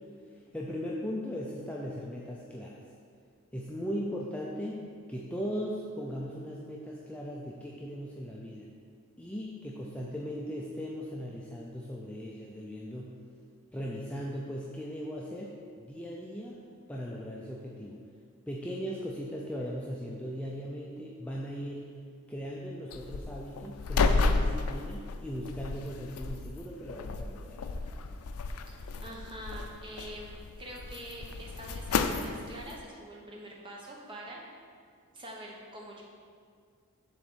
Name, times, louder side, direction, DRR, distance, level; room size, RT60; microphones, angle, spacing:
voice 1, 0.3-2.8 3.5-8.7 9.2-13.1 13.7-16.6 16.9-18.0 18.5-22.0 22.3-27.6, equal, 5° left, -4 dB, 0.4 m, -38 dB
sound 1, 22.9-32.8, left 3 dB, 80° left, 0.4 m, -32 dB
voice 2, 28.7-34.4 35.1-36.0, right 1 dB, 20° right, -2 dB, 1.0 m, -45 dB
7.1 x 3.9 x 6.2 m, 2.1 s
head